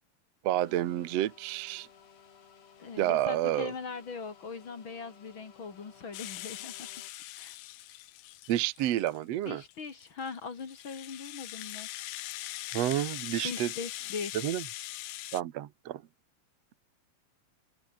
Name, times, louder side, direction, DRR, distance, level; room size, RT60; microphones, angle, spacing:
voice 1, 0.4-1.9 3.0-3.7 8.5-9.6 12.7-13.7 14.4-14.6 15.3-16.0, right 13 dB, 70° right, 1.5 m, -29 dB
sound 1, 0.6-7.1, left 7 dB, 90° left, 6.3 m, -57 dB
voice 2, 2.8-6.9 7.4-7.6 9.4-11.9 13.4-14.5, left 5 dB, 40° left, 2.3 m, -40 dB
Rattle (instrument), 6.1-9.2 9.7-15.4, left 16 dB, 75° left, 2.4 m, -41 dB
omnidirectional pair, 4.6 m